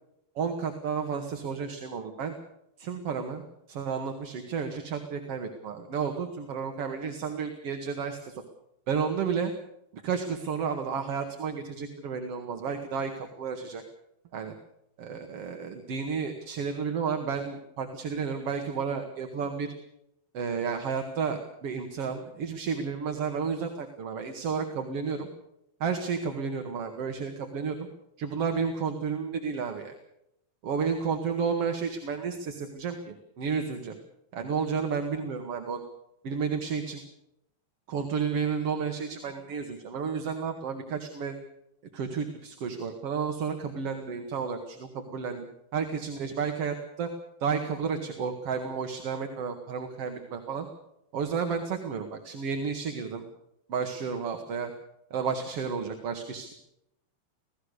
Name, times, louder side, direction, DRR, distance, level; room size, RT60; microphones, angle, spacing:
voice 1, 0.4-2.4 2.8-3.4 3.7-8.4 8.9-9.5 9.9-13.8 14.3-14.5 15.0-19.7 20.3-25.3 25.8-27.8 28.2-30.0 30.6-34.0 34.3-35.8 36.2-37.0 37.9-41.4 41.9-45.5 45.7-47.1 47.4-50.7 51.1-53.2 53.7-54.7 55.1-56.5, right 6 dB, 55° right, 5 dB, 2.6 m, -32 dB
26.5 x 17.5 x 6.8 m, 0.81 s
omnidirectional pair, 3.6 m